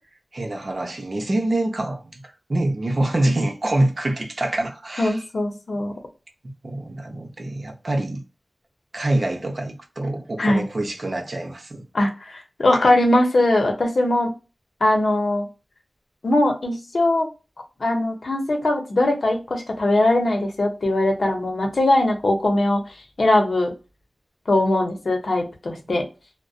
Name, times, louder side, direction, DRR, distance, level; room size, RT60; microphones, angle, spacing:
voice 1, 0.3-5.2 6.6-8.2 8.9-11.8 25.7-25.8, right 1 dB, 55° right, 0.7 m, -25 dB
voice 2, 5.0-5.9 10.4-10.6 11.9-14.3 14.8-15.5 16.2-17.3 17.8-22.8 23.2-23.7 24.5-26.0, left 1 dB, 75° left, 0.7 m, -20 dB
2.5 x 2.1 x 2.3 m
wide cardioid pair, 55°, 0 cm